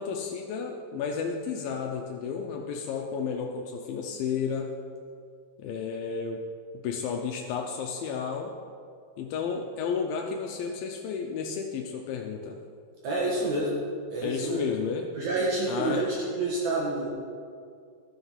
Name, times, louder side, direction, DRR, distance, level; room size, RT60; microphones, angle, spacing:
voice 1, 0.0-4.7 5.6-6.4 6.8-8.6 9.2-12.6 14.2-15.1 15.7-16.2, left 6 dB, 80° left, 2 dB, 2.4 m, -32 dB
voice 2, 13.0-13.7 14.1-14.7 15.1-17.1, right 2 dB, 60° right, -4 dB, 2.4 m, -28 dB
13.0 x 7.1 x 5.4 m, 2.2 s
omnidirectional pair, 4.1 m